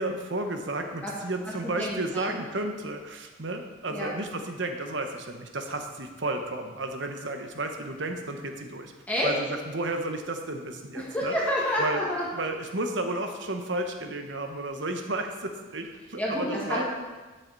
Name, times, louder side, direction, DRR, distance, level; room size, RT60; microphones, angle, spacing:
voice 1, 0.0-8.9 9.2-11.3 11.8-12.1 12.3-16.8, right 2 dB, 65° right, 5 dB, 1.1 m, -32 dB
voice 2, 1.6-2.3 3.9-4.1 9.1-9.3 10.9-12.3 16.2-16.8, equal, 10° left, -6 dB, 1.8 m, -29 dB
12.0 x 7.9 x 4.1 m, 1.3 s
head